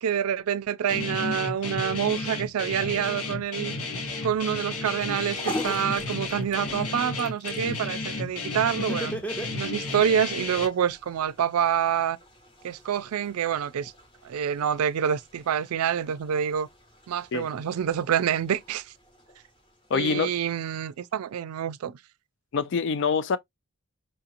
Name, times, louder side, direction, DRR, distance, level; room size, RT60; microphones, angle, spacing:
voice 1, 0.0-3.7 4.2-9.1 9.5-12.2 12.6-13.9 14.2-16.7 17.1-18.9 19.9-22.0, right 8 dB, 90° right, 0.4 m, -27 dB
Guitar, 0.9-10.7, left 3 dB, 85° left, 1.1 m, -33 dB
sound 1, 5.0-21.5, left 1 dB, 25° left, 0.9 m, -45 dB
Laughter, 5.6-7.0 8.8-10.0, right 1 dB, 5° left, 0.6 m, -34 dB
voice 2, 19.9-20.3 22.5-23.4, left 5 dB, 55° left, 0.4 m, -25 dB
4.7 x 2.8 x 2.5 m
head